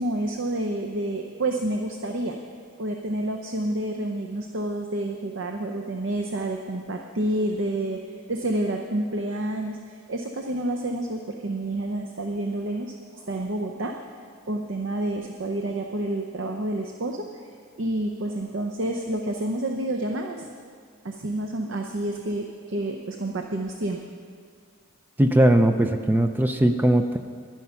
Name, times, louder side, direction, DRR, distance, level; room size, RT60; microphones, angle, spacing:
voice 1, 0.0-2.4 2.8-14.0 14.5-17.4 17.8-20.5 21.0-24.0, right 1 dB, 55° right, 4 dB, 0.6 m, -29 dB
voice 2, 25.2-27.2, right 1 dB, 10° right, 7 dB, 0.3 m, -19 dB
11.0 x 10.5 x 5.7 m, 2.1 s
head